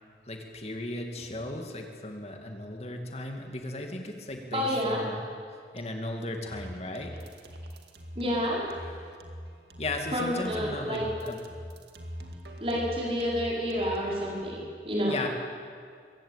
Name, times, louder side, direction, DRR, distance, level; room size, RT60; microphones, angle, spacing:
voice 1, 0.3-5.2 5.7-7.1 9.8-11.4 15.1-15.3, left 2 dB, 35° left, 3 dB, 2.5 m, -36 dB
voice 2, 4.5-5.0 8.2-8.7 10.1-11.0 12.6-15.2, equal, 30° right, -3 dB, 5.4 m, -29 dB
sound 1, 6.5-14.5, equal, 70° right, 2.2 m, -43 dB
23.0 x 15.0 x 9.0 m, 2.1 s
head